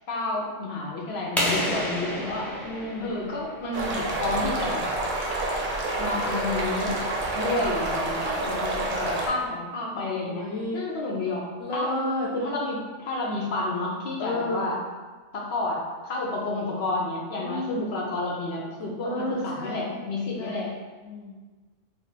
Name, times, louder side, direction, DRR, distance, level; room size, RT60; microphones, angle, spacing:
voice 1, 0.1-2.5 3.0-4.8 6.0-6.9 7.3-10.4 10.7-11.5 11.7-11.9 12.3-14.8 15.3-20.7, left 2 dB, 60° left, -2 dB, 0.9 m, -30 dB
sound 1, 1.4-4.0, equal, ahead, 0.4 m, -30 dB
voice 2, 2.6-3.2 3.9-4.2 7.4-7.8 10.3-10.8 11.6-12.3 14.2-14.7 17.4-17.9 19.0-20.0 20.4-20.8 21.0-21.3, left 1 dB, 90° left, -4 dB, 1.0 m, -32 dB
sound 2, 3.7-9.3, right 2 dB, 50° right, 0.6 m, -28 dB
3.3 x 2.1 x 4.3 m, 1.3 s
omnidirectional pair, 1.3 m